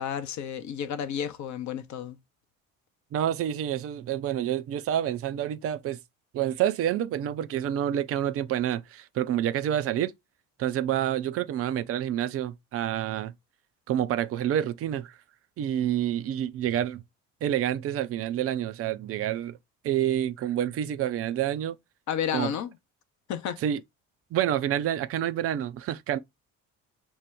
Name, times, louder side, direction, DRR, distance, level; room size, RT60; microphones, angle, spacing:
voice 1, 0.0-2.2 22.1-22.8 23.3-23.6, left 8 dB, 45° left, 0.8 m, -31 dB
voice 2, 3.1-6.0 6.3-10.1 10.6-13.3 13.9-15.1 15.6-17.0 17.4-19.6 19.8-21.8 22.3-22.5 23.6-23.8 24.3-26.2, right 11 dB, 35° right, 0.5 m, -28 dB
6.1 x 2.2 x 3.5 m
figure-of-eight pair, 55°, 42 cm